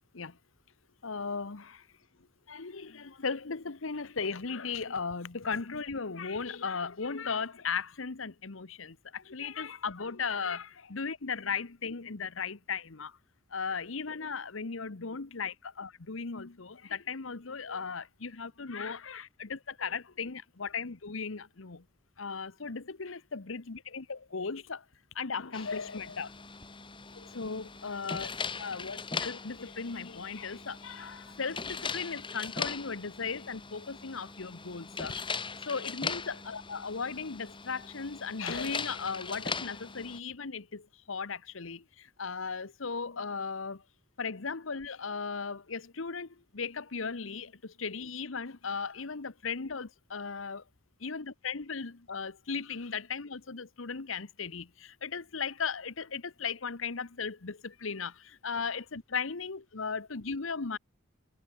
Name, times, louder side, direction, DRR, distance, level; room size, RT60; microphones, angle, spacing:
voice 1, 1.0-1.9 2.5-13.2 13.5-21.8 22.2-24.8 25.1-26.3 27.1-28.3 28.6-35.2 35.6-43.8 44.2-50.6 51.0-60.8, left 5 dB, 85° left, 1.1 m, -37 dB
sound 1, 25.5-40.2, left 5 dB, 25° left, 3.1 m, -40 dB
head